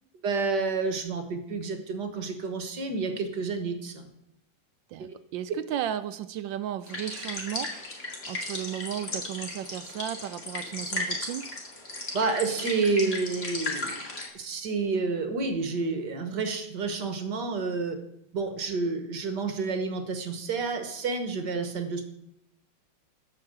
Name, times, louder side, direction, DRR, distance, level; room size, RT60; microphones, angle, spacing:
voice 1, 0.2-4.1 5.0-5.1 12.1-14.0 14.3-18.0 18.3-22.1, right 4 dB, 60° right, 7 dB, 1.8 m, -29 dB
voice 2, 4.9-7.7 8.2-11.4, right 11 dB, 75° right, 12 dB, 1.2 m, -34 dB
sound 1, 6.9-14.3, left 2 dB, 35° left, 2.5 m, -35 dB
12.5 x 5.7 x 7.5 m, 0.79 s
omnidirectional pair, 2.3 m